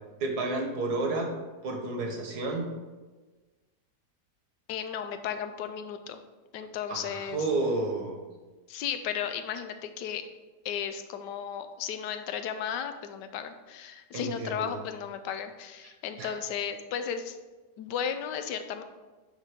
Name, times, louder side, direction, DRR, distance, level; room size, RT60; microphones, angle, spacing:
voice 1, 0.2-1.3 1.6-2.7 6.9-8.2 14.1-14.8 16.2-16.3, right 2 dB, 70° right, 2 dB, 1.7 m, -31 dB
voice 2, 4.7-6.2 6.5-7.4 8.7-10.3 10.6-17.4 17.8-18.8, left 8 dB, 90° left, 9 dB, 1.3 m, -34 dB
8.7 x 3.7 x 5.0 m, 1.3 s
omnidirectional pair, 1.8 m